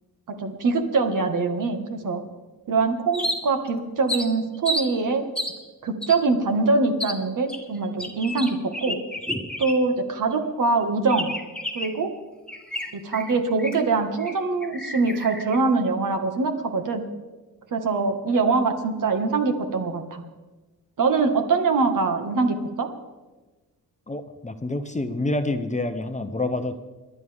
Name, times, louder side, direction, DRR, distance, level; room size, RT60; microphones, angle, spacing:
voice 1, 0.3-2.2 2.7-5.3 5.8-9.0 9.6-11.3 11.7-12.1 12.9-17.0 17.7-20.2 21.0-22.9, right 4 dB, 60° right, 5 dB, 1.9 m, -23 dB
sound 1, 3.1-3.7 4.1-4.9 5.3-5.6 6.0-6.2 7.0-7.2 7.5-10.0 10.3-10.4 11.1-12.0 12.5-13.9 14.2-14.3 14.6-15.6, left 1 dB, 5° left, 1.7 m, -31 dB
voice 2, 24.1-26.8, left 2 dB, 20° left, 8 dB, 0.9 m, -27 dB
28.5 x 11.0 x 3.6 m, 1.2 s
cardioid pair, 100°, 36 cm